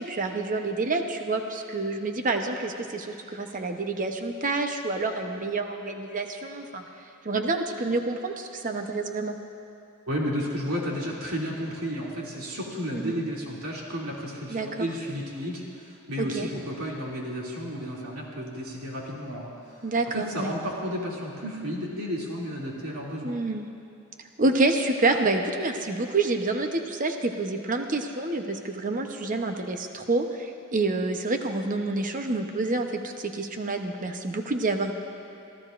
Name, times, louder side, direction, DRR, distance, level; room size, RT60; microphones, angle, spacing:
voice 1, 0.0-6.8 7.2-9.4 12.9-13.1 14.5-14.7 16.2-16.5 19.8-20.5 23.2-23.7 24.4-34.9, right 3 dB, 35° right, 5 dB, 0.8 m, -28 dB
voice 2, 10.1-23.4, equal, 70° right, -4 dB, 2.7 m, -32 dB
25.5 x 14.5 x 2.5 m, 2.8 s
head